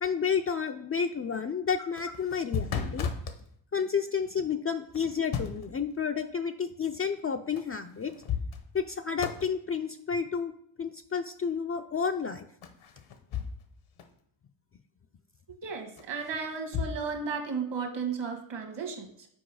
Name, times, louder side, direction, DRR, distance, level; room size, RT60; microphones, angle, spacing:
voice 1, 0.0-3.1 3.7-8.1 8.7-10.5 10.8-12.5, left 6 dB, 30° left, 6 dB, 0.3 m, -31 dB
sound 1, 1.8-3.4 4.9-5.8 7.6-7.7 8.0-8.9 9.2-9.5 12.6-13.7 14.0-14.1 16.0-17.0, left 6 dB, 75° left, 1.0 m, -34 dB
voice 2, 15.6-19.3, right 5 dB, 60° right, 3 dB, 1.4 m, -34 dB
6.1 x 4.6 x 4.7 m, 0.66 s
cardioid pair, 80°, 49 cm